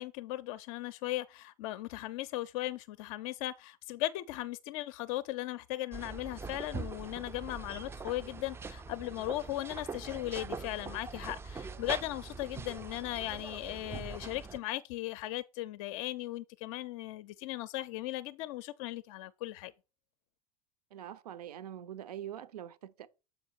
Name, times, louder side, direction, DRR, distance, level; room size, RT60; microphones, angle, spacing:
voice 1, 0.0-19.7, left 16 dB, 60° left, 0.4 m, -37 dB
sound 1, 5.9-14.6, right 4 dB, 10° right, 0.3 m, -43 dB
voice 2, 20.9-23.1, right 10 dB, 80° right, 0.5 m, -44 dB
6.7 x 4.3 x 4.2 m
hypercardioid pair, 80°, 20 cm